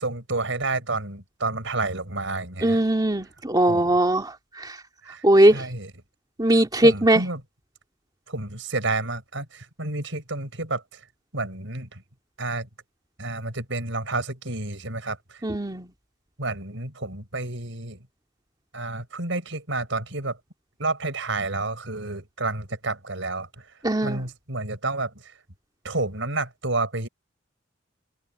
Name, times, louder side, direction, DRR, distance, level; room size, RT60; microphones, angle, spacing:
voice 1, 0.0-2.8 3.7-4.0 5.0-5.9 6.5-7.4 8.3-11.0 11.3-12.0 12.4-12.7 13.2-15.4 16.4-18.0 18.7-20.4 20.8-23.7 24.0-25.3 25.8-27.1, right 2 dB, 70° right, 7.4 m, -30 dB
voice 2, 2.6-4.3 4.6-4.7 5.2-5.6 6.4-7.2 15.4-15.9 23.8-24.2, right 1 dB, 20° right, 2.8 m, -19 dB
head